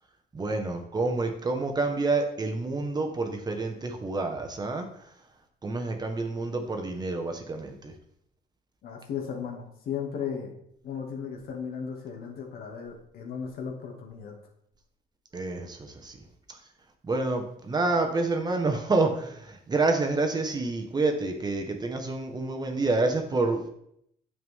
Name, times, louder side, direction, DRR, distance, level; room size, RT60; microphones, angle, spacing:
voice 1, 0.3-4.9 5.6-7.9 15.3-16.2 17.0-23.7, right 3 dB, 25° right, 4 dB, 1.4 m, -28 dB
voice 2, 8.8-10.5 10.8-14.4, left 7 dB, 65° left, 1 dB, 2.3 m, -36 dB
9.5 x 7.3 x 3.7 m, 0.73 s
cardioid pair, 110°, 17 cm